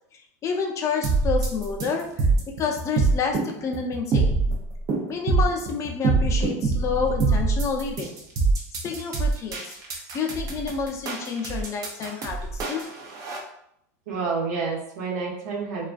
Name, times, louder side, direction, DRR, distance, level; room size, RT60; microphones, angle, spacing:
voice 1, 0.4-2.3 2.6-4.4 5.1-8.1 8.8-12.8, left 5 dB, 35° left, 2 dB, 0.5 m, -29 dB
sound 1, 1.0-13.4, right 3 dB, 40° right, 0.6 m, -24 dB
voice 2, 14.1-15.9, right 4 dB, 80° right, -4 dB, 0.9 m, -29 dB
2.4 x 2.3 x 2.4 m, 0.75 s
hypercardioid pair, 110°, 9 cm